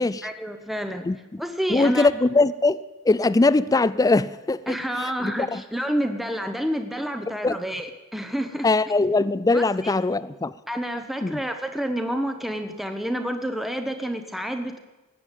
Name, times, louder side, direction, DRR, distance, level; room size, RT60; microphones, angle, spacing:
voice 1, 0.2-1.1 1.4-2.1 4.7-8.7 9.5-9.9 10.7-14.8, equal, ahead, 0.8 m, -29 dB
voice 2, 1.1-1.4 1.7-4.8 5.0-5.6 7.4-7.6 8.6-10.5 11.2-11.4, left 3 dB, 15° left, 0.4 m, -21 dB
18.5 x 7.9 x 9.0 m
head